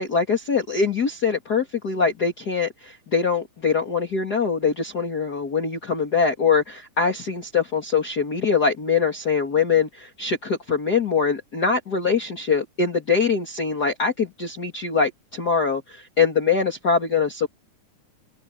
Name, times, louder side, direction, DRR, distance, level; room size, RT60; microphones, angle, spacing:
voice 1, 0.0-17.5, left 5 dB, 35° left, 2.8 m, -23 dB
omnidirectional pair, 3.5 m